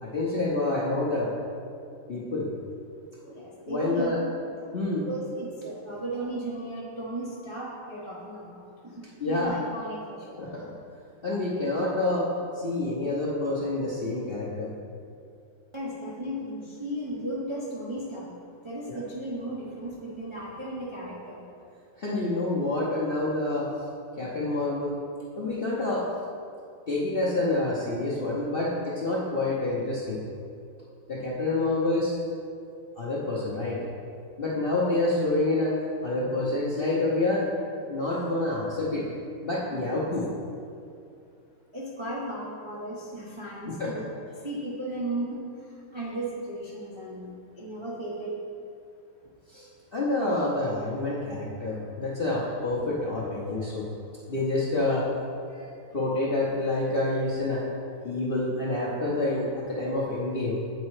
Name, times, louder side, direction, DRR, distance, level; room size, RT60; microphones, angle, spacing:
voice 1, 0.0-1.3 2.1-2.5 3.7-4.2 4.7-5.1 9.2-9.6 10.4-10.7 11.2-12.3 12.5-14.7 18.9-19.0 22.0-23.7 24.2-25.0 25.4-26.1 26.9-30.2 31.1-32.2 33.0-33.8 34.4-37.5 37.9-39.0 39.4-40.2 43.6-44.0 49.5-53.9 54.3-55.1 55.5-57.7 58.0-60.6, left 2 dB, 75° left, -7 dB, 0.5 m, -28 dB
voice 2, 3.2-4.1 4.6-4.7 5.1-10.4 15.7-18.3 18.6-21.4 39.7-40.1 41.7-44.1 44.4-48.3, right 1 dB, 50° right, -7 dB, 0.3 m, -35 dB
8.1 x 4.2 x 4.8 m, 2.4 s
omnidirectional pair, 2.3 m